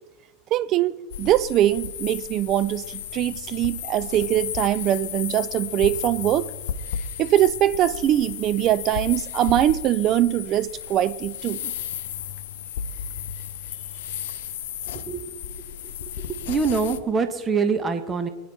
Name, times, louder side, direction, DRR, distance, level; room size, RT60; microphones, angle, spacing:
voice 1, 0.5-6.5 7.2-11.7, right 12 dB, 45° right, 0.5 m, -22 dB
sound 1, 1.1-17.0, left 9 dB, 65° left, 0.8 m, -34 dB
voice 2, 14.9-15.4 16.2-18.3, right 5 dB, 25° right, 1.3 m, -25 dB
25.0 x 10.5 x 4.2 m
figure-of-eight pair, 80°, 0 cm